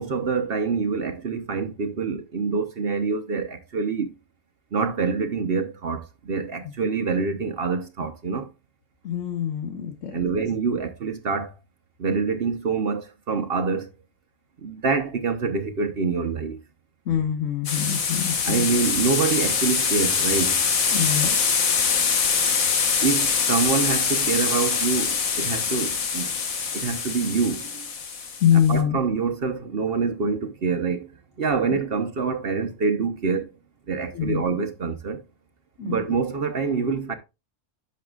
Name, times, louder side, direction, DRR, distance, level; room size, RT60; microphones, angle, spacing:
voice 1, 0.0-4.1 4.7-8.5 10.1-11.5 12.0-13.9 14.6-16.6 18.5-20.6 23.0-26.3 26.7-27.9 28.7-31.1 31.4-33.5 33.9-35.2 35.8-37.2, right 5 dB, 50° right, 0.9 m, -26 dB
voice 2, 9.0-10.3 17.1-18.7 20.9-21.7 22.9-23.0 28.4-29.0 34.1-34.4 35.8-36.0, left 9 dB, 65° left, 1.5 m, -24 dB
sound 1, 17.7-28.7, left 6 dB, 85° left, 1.7 m, -24 dB
11.0 x 7.1 x 2.4 m
omnidirectional pair, 1.4 m